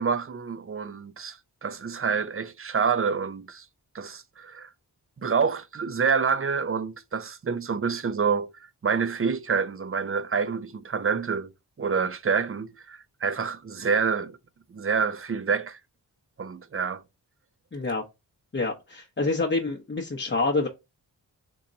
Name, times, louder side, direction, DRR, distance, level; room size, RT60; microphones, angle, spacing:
voice 1, 0.0-3.7 3.9-4.7 5.2-8.5 8.8-11.5 11.8-14.4 14.7-15.8 16.4-17.0, right 5 dB, 30° right, 0.5 m, -27 dB
voice 2, 17.7-18.0 18.5-20.7, left 3 dB, 30° left, 0.8 m, -27 dB
3.8 x 2.8 x 3.9 m
cardioid pair, 65°, 41 cm